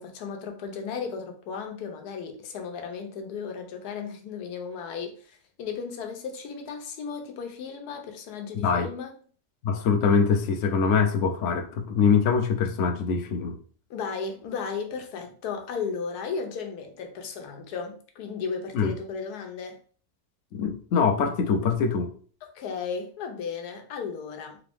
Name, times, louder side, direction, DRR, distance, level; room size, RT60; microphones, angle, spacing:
voice 1, 0.0-9.1 13.9-19.8 22.5-24.6, left 5 dB, 85° left, 1.2 m, -35 dB
voice 2, 8.5-8.9 9.6-13.6 18.7-18.9 20.5-22.1, left 5 dB, 65° left, 0.7 m, -23 dB
3.7 x 2.5 x 3.4 m
omnidirectional pair, 1.6 m